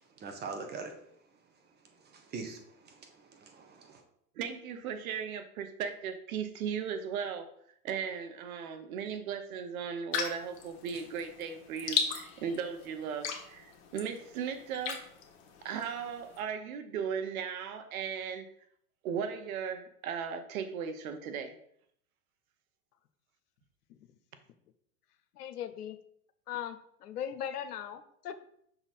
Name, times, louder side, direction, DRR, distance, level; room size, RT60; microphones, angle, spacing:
voice 1, 0.2-0.9 2.1-2.6 2.9-4.0, right 4 dB, 20° right, 4 dB, 1.1 m, -42 dB
voice 2, 4.4-7.5 7.8-15.0 15.6-18.4 19.0-21.5, right 7 dB, 65° right, 9 dB, 1.0 m, -37 dB
sound 1, 10.1-16.4, left 6 dB, 45° left, 1.3 m, -38 dB
voice 3, 25.3-26.0 26.5-28.3, left 9 dB, 80° left, 11 dB, 0.7 m, -39 dB
5.9 x 3.9 x 4.2 m, 0.70 s
hypercardioid pair, 110°, 45 cm